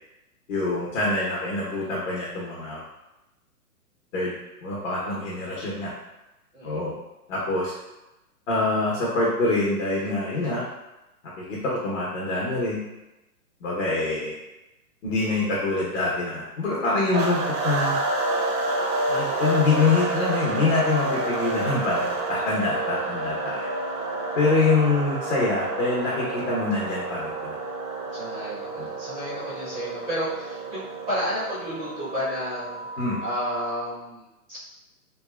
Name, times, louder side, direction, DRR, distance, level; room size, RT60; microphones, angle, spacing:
voice 1, 0.5-2.8 4.1-4.3 4.6-5.9 6.6-6.9 7.3-7.7 8.5-10.6 11.4-12.8 13.6-14.3 15.0-17.9 19.1-23.7 24.4-27.5 28.8-28.9 33.0-33.2, left 3 dB, 50° left, -5 dB, 0.8 m, -25 dB
sound 1, 17.1-33.8, right 2 dB, 85° right, 0.7 m, -29 dB
voice 2, 23.0-23.3 28.1-32.8 33.2-34.6, equal, 10° right, -10 dB, 0.4 m, -32 dB
2.7 x 2.2 x 2.2 m, 0.96 s
hypercardioid pair, 140°, 47 cm